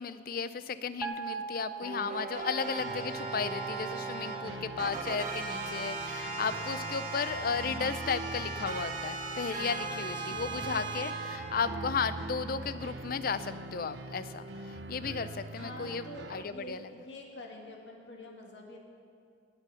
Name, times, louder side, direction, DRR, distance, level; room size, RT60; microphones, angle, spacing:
voice 1, 0.0-16.9, left 5 dB, 55° left, 13 dB, 0.5 m, -34 dB
sound 1, 1.0-13.3, right 4 dB, 10° right, 1.0 m, -45 dB
sound 2, 1.8-4.4 4.8-11.4, right 3 dB, 45° right, 1.4 m, -38 dB
sound 3, 2.8-16.4, right 2 dB, 70° right, 0.7 m, -43 dB
voice 2, 9.9-10.5 10.8-10.9 15.6-18.8, left 1 dB, 80° left, 0 dB, 2.1 m, -47 dB
18.5 x 8.2 x 5.8 m, 2.3 s
head